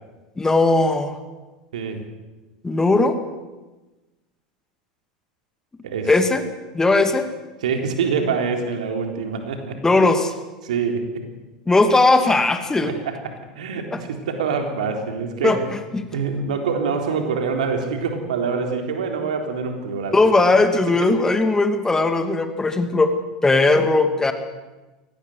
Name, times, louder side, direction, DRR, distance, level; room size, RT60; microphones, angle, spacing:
voice 1, 0.4-1.2 2.6-3.2 6.1-6.4 6.7-7.3 9.8-10.3 11.7-12.9 13.9-14.0 15.4-16.0 20.1-23.1 23.4-24.3, left 2 dB, 15° left, 7 dB, 2.4 m, -18 dB
voice 2, 7.6-9.8 10.6-11.2 12.9-13.2 13.6-15.6 16.1-20.2, right 5 dB, 70° right, 4 dB, 3.9 m, -25 dB
23.0 x 18.5 x 8.0 m, 1.2 s
hypercardioid pair, 85°, 4 cm